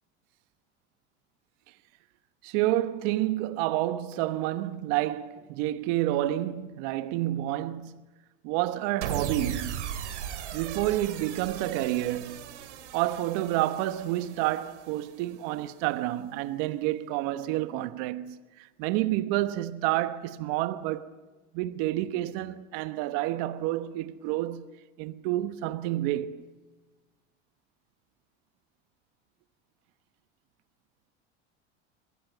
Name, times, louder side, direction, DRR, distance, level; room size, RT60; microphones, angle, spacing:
voice 1, 2.4-8.0 8.4-9.8 10.5-12.6 12.9-21.1 21.5-24.7 25.0-26.4, right 15 dB, 65° right, 1.1 m, -29 dB
sound 1, 9.0-15.3, right 9 dB, 85° right, 2.4 m, -37 dB
22.5 x 16.5 x 9.3 m
hypercardioid pair, 90°, 34 cm